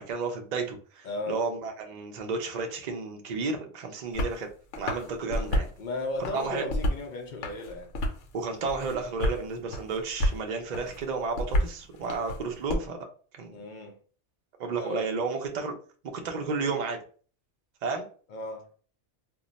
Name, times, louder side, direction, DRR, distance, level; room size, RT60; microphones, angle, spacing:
voice 1, 0.0-4.5 4.8-5.7 6.3-6.6 8.3-13.0 13.4-13.6 14.6-15.7 16.2-17.0 17.8-18.0, right 4 dB, 60° right, 0.4 m, -32 dB
voice 2, 1.0-1.5 5.8-7.9 13.5-14.0 14.8-15.1 18.3-18.7, left 2 dB, 60° left, 0.5 m, -35 dB
sound 1, 4.1-4.4 4.7-5.7 6.2-7.1 7.4-8.3 8.7-9.4 9.7-10.4 10.7-12.8, equal, 75° left, 0.9 m, -29 dB
2.2 x 2.1 x 3.8 m
omnidirectional pair, 1.3 m